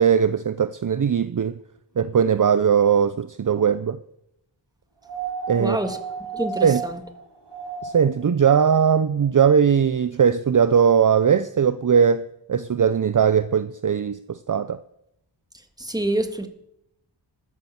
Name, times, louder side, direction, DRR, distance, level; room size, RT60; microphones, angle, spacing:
voice 1, 0.0-1.6 2.0-4.0 5.5-5.8 6.6-6.8 7.8-14.8, right 7 dB, 45° right, 0.5 m, -19 dB
sound 1, 5.0-8.3 9.7-9.8, right 6 dB, 60° right, 2.1 m, -33 dB
voice 2, 5.6-6.0 6.3-7.0 15.5-16.5, right 1 dB, 10° right, 1.6 m, -27 dB
12.5 x 9.4 x 7.2 m
wide cardioid pair, 50°, 46 cm